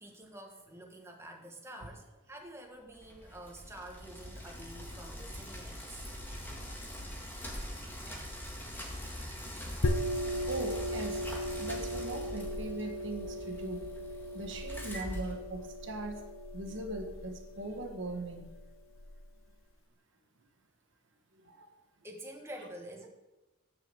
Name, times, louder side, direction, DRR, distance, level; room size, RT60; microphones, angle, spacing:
voice 1, 0.0-6.0 22.0-23.1, right 1 dB, 15° right, 2 dB, 1.4 m, -48 dB
Bicycle, 2.9-16.0, equal, 10° left, 1.7 m, -43 dB
sound 1, 9.8-19.2, equal, 80° left, 0.7 m, -37 dB
voice 2, 10.5-11.2 11.6-13.8 14.3-16.2 16.5-18.5 21.6-21.7, right 2 dB, 65° right, 4 dB, 1.3 m, -40 dB
6.8 x 6.6 x 7.6 m, 1.1 s
head